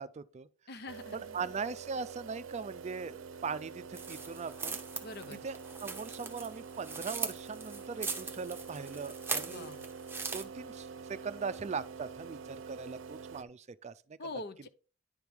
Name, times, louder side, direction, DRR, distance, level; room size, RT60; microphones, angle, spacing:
voice 1, 0.0-0.5 1.1-4.8 5.4-5.6 5.8-9.7 10.3-14.2, right 5 dB, 35° right, 0.4 m, -40 dB
voice 2, 0.7-1.4 5.0-5.5 9.5-9.9 14.2-14.7, left 2 dB, 55° left, 0.8 m, -44 dB
sound 1, 0.9-13.4, right 5 dB, 85° right, 0.6 m, -46 dB
sound 2, 3.9-10.4, right 4 dB, 10° right, 1.0 m, -40 dB
10.5 x 3.5 x 4.6 m
head